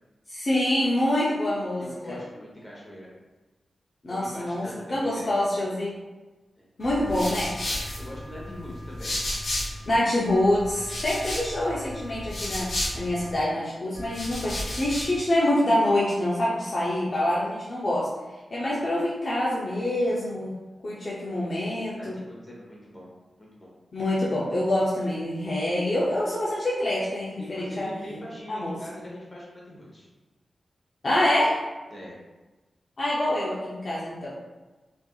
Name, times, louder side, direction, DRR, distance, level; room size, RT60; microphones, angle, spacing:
voice 1, 0.3-2.2 4.0-6.0 6.8-7.5 9.9-18.1 18.5-20.6 20.8-22.2 23.9-28.2 28.5-28.8 31.0-31.7 33.0-34.3, left 1 dB, 45° left, -7 dB, 0.7 m, -26 dB
voice 2, 1.8-3.1 4.1-5.4 6.5-6.7 8.0-9.2 21.9-23.1 23.4-23.7 27.4-30.1 31.9-32.2, left 1 dB, 20° left, -5 dB, 1.2 m, -42 dB
sound 1, 6.8-9.9 10.3-13.4 13.9-15.2, left 1 dB, 70° left, 1.4 m, -33 dB
4.2 x 2.7 x 2.4 m, 1.2 s
wide cardioid pair, 85°, 0 cm